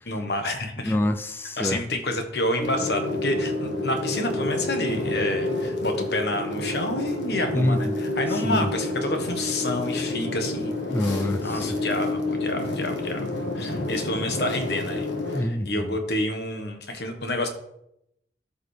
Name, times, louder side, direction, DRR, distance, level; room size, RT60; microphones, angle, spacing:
voice 1, 0.1-1.0 1.6-10.7 11.4-15.1 15.3-17.5, left 1 dB, 65° left, 1.2 m, -29 dB
voice 2, 0.8-1.8 7.5-7.9 8.4-8.7 10.9-11.6 15.3-16.0, left 1 dB, 10° left, 0.4 m, -26 dB
sound 1, 2.6-15.4, left 2 dB, 90° left, 1.3 m, -29 dB
13.0 x 5.0 x 3.3 m
head